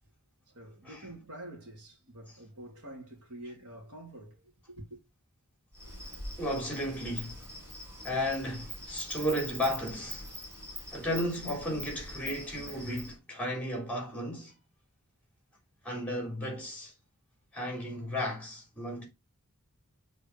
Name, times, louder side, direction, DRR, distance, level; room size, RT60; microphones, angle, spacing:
voice 1, 0.5-5.0, right 1 dB, 75° right, 2.4 m, -47 dB
Insect, 5.7-13.1, equal, 10° right, 4.9 m, -43 dB
voice 2, 6.4-7.5 8.0-10.4 10.9-14.5 15.8-16.9 17.5-19.1, equal, 5° left, 3.6 m, -34 dB
6.9 x 4.1 x 5.4 m
head